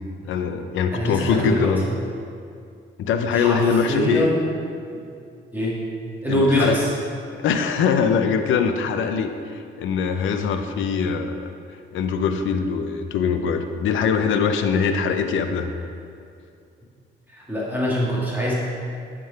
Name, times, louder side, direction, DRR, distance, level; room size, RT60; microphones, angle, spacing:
voice 1, 0.2-1.8 3.0-4.3 6.3-6.8 7.3-11.5 11.9-15.7, left 6 dB, 75° left, 7 dB, 0.6 m, -22 dB
voice 2, 0.9-1.7 3.3-4.4 5.5-5.7 6.2-6.9 17.3-18.5, equal, 10° right, -7 dB, 1.7 m, -23 dB
9.3 x 3.8 x 4.6 m, 2.4 s
cardioid pair, 90°, 20 cm